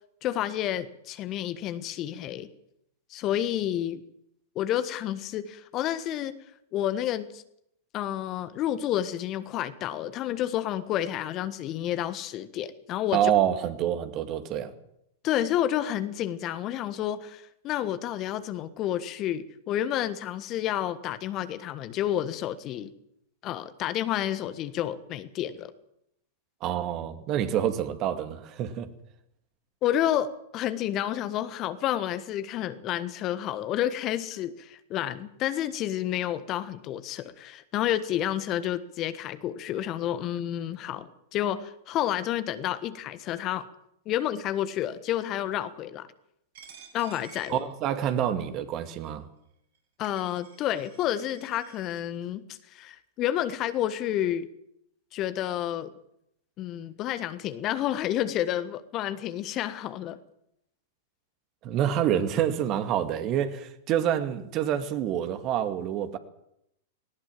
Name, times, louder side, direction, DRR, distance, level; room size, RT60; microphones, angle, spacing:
voice 1, 0.2-2.5 3.1-4.0 4.5-6.3 6.7-7.4 7.9-13.3 15.2-22.9 23.4-25.7 29.8-43.7 44.0-46.1 46.9-47.6 50.0-54.5 55.1-55.9 56.6-60.2, left 11 dB, 35° left, 1.4 m, -30 dB
voice 2, 13.1-14.7 26.6-28.9 47.5-49.3 61.6-66.2, right 10 dB, 40° right, 2.2 m, -27 dB
Coin (dropping), 46.5-48.3 49.0-49.1 49.7-49.8 50.0-52.0, right 7 dB, 60° right, 7.1 m, -52 dB
19.0 x 18.5 x 7.5 m
figure-of-eight pair, 100°, 0 cm